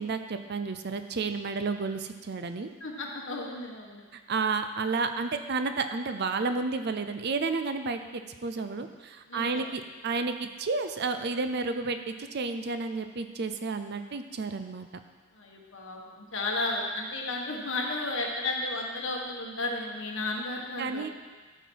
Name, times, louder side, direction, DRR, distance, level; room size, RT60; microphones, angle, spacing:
voice 1, 0.0-2.7 4.1-14.9 20.8-21.1, right 4 dB, 50° right, 8 dB, 0.5 m, -31 dB
voice 2, 2.8-4.0 9.3-9.6 15.3-21.1, left 2 dB, 60° left, -1 dB, 1.6 m, -33 dB
13.5 x 5.9 x 4.7 m, 1.4 s
head